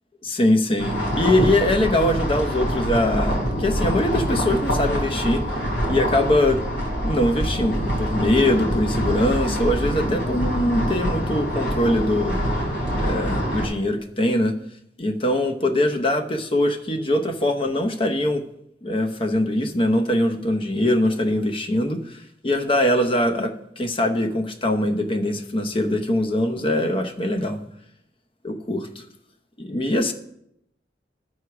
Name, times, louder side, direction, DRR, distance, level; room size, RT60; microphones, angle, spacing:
voice 1, 0.2-5.6 5.9-6.6 7.0-12.4 13.0-14.5 15.0-18.4 18.8-27.6 28.4-29.0 29.6-30.1, left 1 dB, 30° left, 6 dB, 0.8 m, -22 dB
sound 1, 0.8-13.7, equal, 65° left, 3.2 m, -25 dB
11.5 x 4.8 x 5.9 m, 0.77 s
head